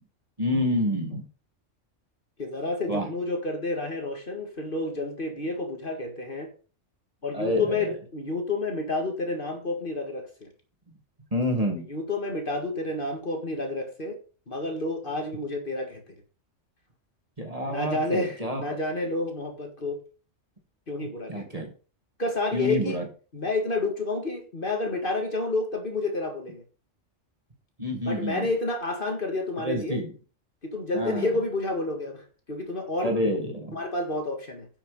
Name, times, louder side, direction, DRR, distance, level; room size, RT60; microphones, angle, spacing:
voice 1, 0.4-1.2 2.9-3.1 7.3-7.9 11.3-11.9 17.4-18.6 21.3-21.7 22.5-23.1 27.8-28.5 29.6-30.1 30.9-31.3 33.0-33.8, left 1 dB, 30° right, 3 dB, 2.3 m, -28 dB
voice 2, 2.4-6.5 7.2-10.5 11.9-14.2 14.5-16.0 17.7-20.0 20.9-21.6 22.2-23.0 23.3-26.6 28.1-30.0 30.6-33.2 33.7-34.7, left 2 dB, 45° left, 3 dB, 2.0 m, -30 dB
10.5 x 6.0 x 5.2 m, 0.37 s
omnidirectional pair, 1.3 m